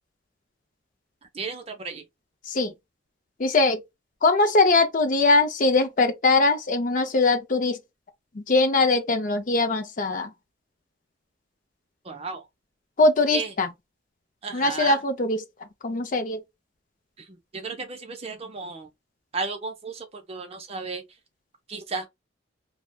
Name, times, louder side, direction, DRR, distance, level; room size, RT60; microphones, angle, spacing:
voice 1, 1.3-2.0 12.0-12.5 13.3-13.5 14.4-15.0 17.2-18.9 19.3-21.0 21.7-22.1, right 4 dB, 30° right, 0.5 m, -34 dB
voice 2, 3.4-3.8 4.2-7.8 8.4-10.3 13.0-13.7 14.5-15.4 15.8-16.4, left 3 dB, 40° left, 0.5 m, -21 dB
3.2 x 2.1 x 2.3 m
head